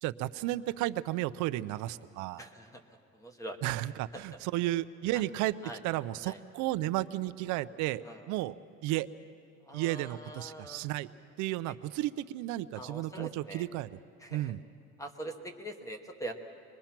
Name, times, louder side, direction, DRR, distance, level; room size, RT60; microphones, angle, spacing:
voice 1, 0.0-2.4 3.6-5.5 5.8-8.6 8.8-9.1 9.7-11.1 11.4-13.9 14.3-14.6, right 16 dB, 85° right, 13 dB, 0.6 m, -33 dB
voice 2, 2.4-3.6 4.1-4.3 5.1-5.2 5.6-5.8 6.2-6.4 8.0-8.3 9.6-10.9 11.7-11.8 12.7-13.7 14.2-14.5 15.0-16.3, right 1 dB, 10° left, 6 dB, 1.0 m, -43 dB
24.5 x 21.0 x 5.9 m, 2.4 s
cardioid pair, 175°, 29 cm